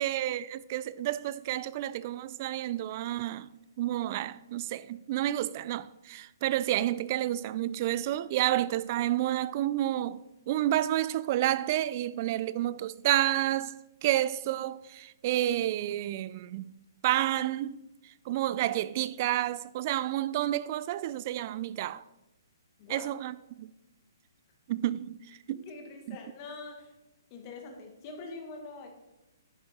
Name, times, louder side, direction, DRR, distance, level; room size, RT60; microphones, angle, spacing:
voice 1, 0.0-3.5 3.8-16.7 17.0-22.0 22.9-23.7 24.7-25.6 26.1-26.2, right 13 dB, 40° right, 0.3 m, -30 dB
voice 2, 22.8-23.1 25.5-26.9 27.3-28.9, left 3 dB, 35° left, 1.7 m, -44 dB
10.0 x 6.2 x 4.2 m
hypercardioid pair, 140°, 2 cm